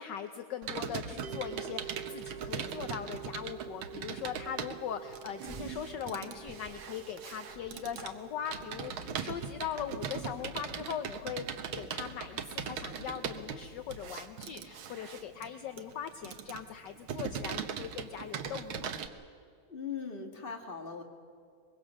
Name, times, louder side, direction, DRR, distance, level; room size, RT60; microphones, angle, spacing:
voice 1, 0.0-19.0, left 8 dB, 65° left, 8 dB, 1.4 m, -40 dB
Computer keyboard, 0.6-19.1, right 7 dB, 80° right, 1.9 m, -40 dB
sound 1, 1.2-12.4, right 9 dB, 60° right, 1.5 m, -50 dB
sound 2, 5.4-5.9 6.3-6.9 7.4-8.1 8.6-9.0 9.7-10.0 10.7-11.1 12.0-12.1, right 1 dB, 20° right, 1.7 m, -53 dB
voice 2, 19.7-21.0, left 6 dB, 25° left, 3 dB, 2.1 m, -39 dB
23.5 x 22.5 x 6.4 m, 2.2 s
omnidirectional pair, 2.2 m